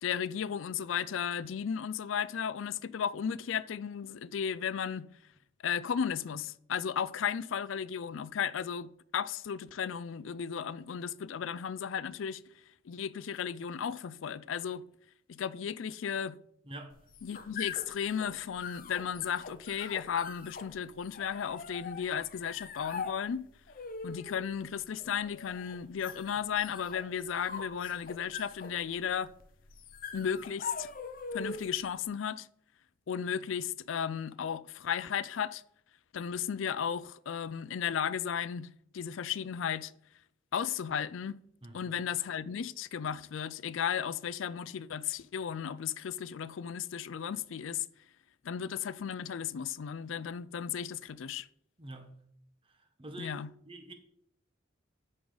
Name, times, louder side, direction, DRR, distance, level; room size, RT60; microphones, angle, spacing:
voice 1, 0.0-5.1 5.6-12.4 12.8-14.9 15.3-16.4 17.2-23.5 24.0-29.3 30.1-30.9 31.3-32.5 33.1-35.6 36.1-39.9 40.5-41.4 41.7-47.9 48.4-51.5 53.2-53.5, left 8 dB, 80° left, 0.4 m, -35 dB
sound 1, 16.9-31.8, left 5 dB, 45° left, 0.7 m, -43 dB
voice 2, 51.8-52.1 53.0-53.4 53.6-53.9, right 1 dB, 30° right, 1.1 m, -45 dB
13.0 x 5.1 x 3.9 m
head